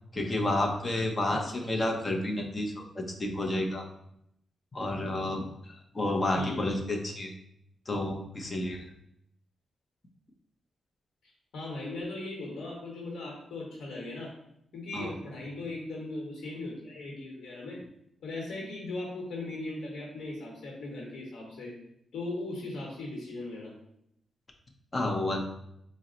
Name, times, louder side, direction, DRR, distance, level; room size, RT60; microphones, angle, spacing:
voice 1, 0.1-3.8 4.7-7.3 7.9-8.8 14.9-15.1 24.9-25.5, left 1 dB, 30° left, 2 dB, 0.6 m, -30 dB
voice 2, 1.3-1.7 6.3-6.6 11.5-14.4 14.7-17.8 18.2-21.7 22.1-23.7, left 2 dB, 90° left, -2 dB, 1.0 m, -38 dB
4.1 x 2.1 x 3.8 m, 0.76 s
cardioid pair, 110°, 0 cm